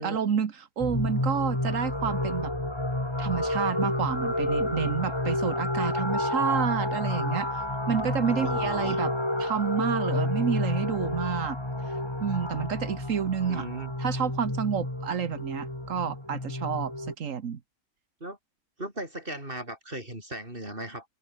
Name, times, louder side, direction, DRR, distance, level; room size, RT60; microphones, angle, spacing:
voice 1, 0.0-2.5 3.2-9.1 9.4-11.6 11.9-13.7 14.0-17.6, right 7 dB, 85° right, 1.7 m, -29 dB
sound 1, 0.8-17.1, left 1 dB, 20° left, 3.4 m, -30 dB
voice 2, 8.3-9.0 13.4-13.9 18.2-18.4 18.8-21.1, right 1 dB, 45° right, 8.3 m, -37 dB
omnidirectional pair, 1.3 m